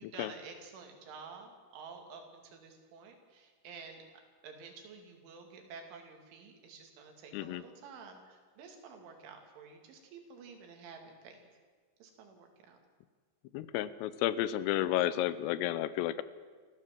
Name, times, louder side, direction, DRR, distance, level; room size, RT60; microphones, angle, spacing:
voice 1, 0.0-4.0 4.4-11.4 12.0-12.8, right 5 dB, 70° right, 3 dB, 4.8 m, -50 dB
voice 2, 13.5-16.2, left 13 dB, 85° left, 16 dB, 3.3 m, -32 dB
27.5 x 15.0 x 7.7 m, 1.5 s
omnidirectional pair, 5.9 m